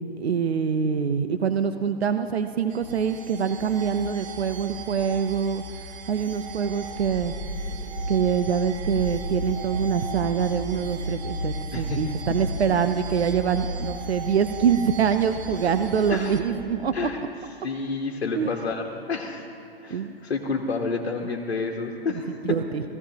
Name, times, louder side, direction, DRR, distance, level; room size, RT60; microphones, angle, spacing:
voice 1, 0.2-5.6 6.1-7.3 8.1-17.1 18.4-18.5 19.9-20.1 22.4-22.8, right 7 dB, 80° right, 9 dB, 0.8 m, -25 dB
sound 1, 2.7-16.4, right 1 dB, 45° right, 1.5 m, -35 dB
sound 2, 6.8-17.2, left 1 dB, 10° left, 3.1 m, -42 dB
voice 2, 11.7-12.0 16.1-16.4 16.9-17.2 17.6-19.5 19.8-22.6, left 4 dB, 80° left, 1 dB, 1.3 m, -30 dB
17.5 x 15.5 x 2.9 m, 2.8 s
hypercardioid pair, 130°, 31 cm